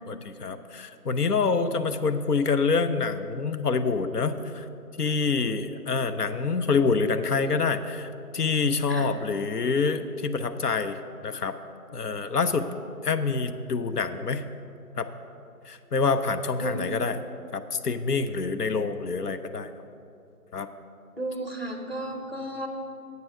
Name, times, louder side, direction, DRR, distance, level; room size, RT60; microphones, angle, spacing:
voice 1, 0.1-4.7 5.0-11.5 11.9-12.7 13.0-14.4 15.0-15.1 15.7-17.2 17.5-19.7 20.5-20.7, left 4 dB, 75° left, 10 dB, 0.7 m, -26 dB
voice 2, 16.6-16.9 21.2-22.7, right 1 dB, 40° right, 4 dB, 0.7 m, -33 dB
8.2 x 6.6 x 5.9 m, 2.6 s
figure-of-eight pair, 175°, 47 cm